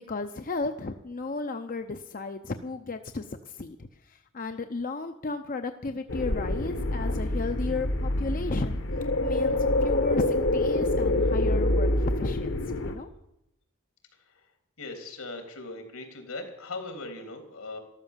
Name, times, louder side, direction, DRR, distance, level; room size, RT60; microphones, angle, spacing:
voice 1, 0.1-8.8 9.2-13.1, left 3 dB, 40° left, 7 dB, 0.6 m, -34 dB
sound 1, 6.1-13.0, left 1 dB, 60° left, 1.2 m, -26 dB
voice 2, 14.8-17.8, left 2 dB, 85° left, 5 dB, 3.4 m, -39 dB
13.0 x 13.0 x 7.4 m, 0.84 s
head